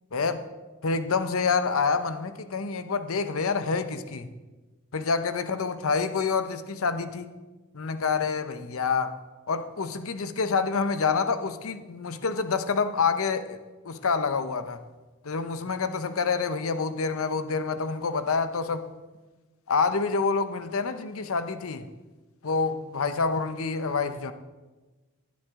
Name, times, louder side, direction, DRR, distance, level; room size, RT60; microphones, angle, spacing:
voice 1, 0.1-0.4 0.8-4.3 4.9-7.3 7.7-9.2 9.5-13.6 13.8-14.8 15.2-18.9 19.7-21.9 22.4-24.3, left 5 dB, 70° left, 10 dB, 0.7 m, -27 dB
16.0 x 9.5 x 3.6 m, 1.2 s
head